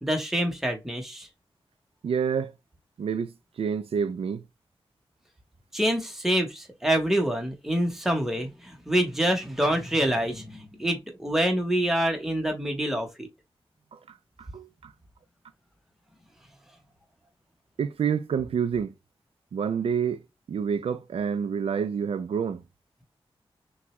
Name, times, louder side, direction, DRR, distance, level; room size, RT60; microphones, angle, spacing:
voice 1, 0.0-1.3 5.7-13.3, right 1 dB, 5° right, 0.9 m, -26 dB
voice 2, 2.0-2.5 3.0-4.4 13.9-14.9 17.8-18.9 19.5-20.2 20.5-22.6, right 7 dB, 85° right, 0.4 m, -28 dB
6.0 x 2.3 x 3.0 m
wide cardioid pair, 150°, 10 cm